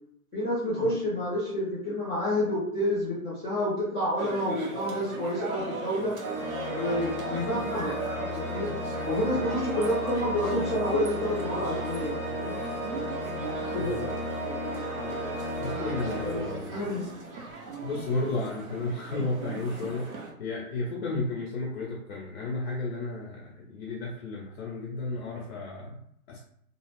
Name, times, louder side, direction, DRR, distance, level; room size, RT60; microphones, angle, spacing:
voice 1, 0.3-6.2 6.7-8.0 8.3-8.8 9.0-12.1 13.7-14.2 15.6-16.4 16.7-17.1, left 1 dB, 5° right, -14 dB, 0.4 m, -29 dB
sound 1, 4.2-20.3, right 3 dB, 70° right, 0.9 m, -39 dB
Organ, 6.2-17.1, equal, 40° right, 0.8 m, -34 dB
voice 2, 15.6-16.8 17.8-26.4, left 2 dB, 45° left, -2 dB, 0.6 m, -33 dB
2.4 x 2.3 x 3.1 m, 0.69 s
hypercardioid pair, 135°, 44 cm